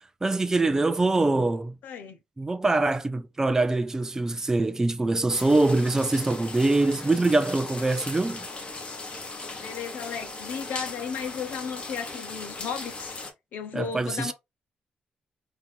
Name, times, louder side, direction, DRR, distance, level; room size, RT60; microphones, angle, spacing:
voice 1, 0.2-1.7 2.4-8.5 13.7-14.3, right 2 dB, 15° right, 0.5 m, -24 dB
voice 2, 1.8-2.2 9.6-14.3, left 7 dB, 85° left, 1.0 m, -35 dB
sound 1, 5.3-13.3, left 3 dB, 40° left, 1.6 m, -38 dB
4.1 x 2.9 x 3.7 m
cardioid pair, 95°, 3 cm